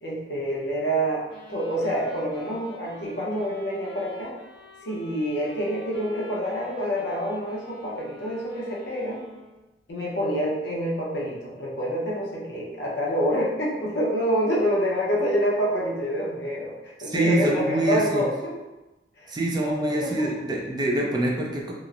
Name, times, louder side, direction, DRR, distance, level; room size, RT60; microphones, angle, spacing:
voice 1, 0.0-1.2 1.5-4.3 4.8-9.3 9.9-18.5 19.2-19.3 19.6-20.4, equal, 75° left, -4 dB, 0.7 m, -27 dB
sound 1, 1.3-9.7, right 1 dB, 70° right, 0.7 m, -48 dB
voice 2, 17.0-18.2 19.3-21.7, right 1 dB, 25° right, -2 dB, 0.4 m, -25 dB
2.9 x 2.0 x 2.4 m, 1.0 s
head